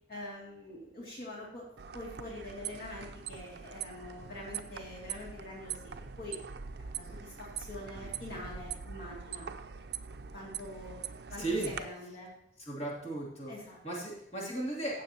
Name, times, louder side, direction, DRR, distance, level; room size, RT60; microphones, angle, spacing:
voice 1, 0.1-1.7 1.9-5.8 6.2-6.4 6.8-9.5 10.3-10.9 11.3-12.3 13.5-14.1, left 1 dB, 55° left, -5 dB, 2.4 m, -45 dB
sound 1, 1.8-11.8, right 7 dB, 65° right, 0.5 m, -43 dB
voice 2, 11.4-11.7 12.6-13.5 13.8-15.0, right 2 dB, 35° left, -5 dB, 2.8 m, -35 dB
15.5 x 7.3 x 2.9 m, 0.74 s
head